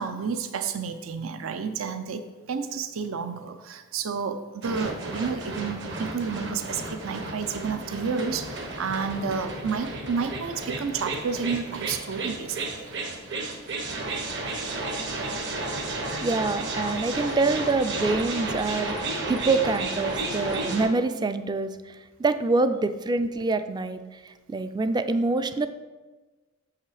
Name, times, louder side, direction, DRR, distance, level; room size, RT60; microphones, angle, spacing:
voice 1, 0.0-12.9, right 5 dB, 80° right, 9 dB, 0.5 m, -31 dB
sound 1, 4.6-20.9, right 2 dB, 60° right, 1.1 m, -32 dB
voice 2, 16.2-19.0 19.3-21.7 22.2-24.0 24.5-25.7, right 3 dB, 20° right, 11 dB, 0.3 m, -25 dB
6.8 x 5.7 x 4.8 m, 1.2 s
head